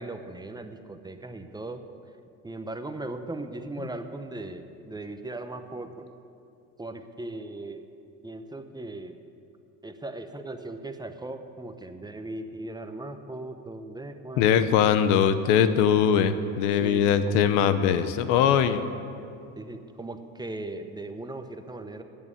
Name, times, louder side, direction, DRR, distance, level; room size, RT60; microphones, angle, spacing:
voice 1, 0.0-1.8 2.4-6.1 6.8-7.8 8.2-9.2 9.8-14.8 15.2-15.3 16.8-17.2 19.6-22.0, right 2 dB, 10° right, 7 dB, 0.8 m, -38 dB
voice 2, 14.4-18.9, left 8 dB, 85° left, 11 dB, 0.8 m, -21 dB
10.5 x 8.8 x 8.4 m, 2.6 s
supercardioid pair, 95°, 36 cm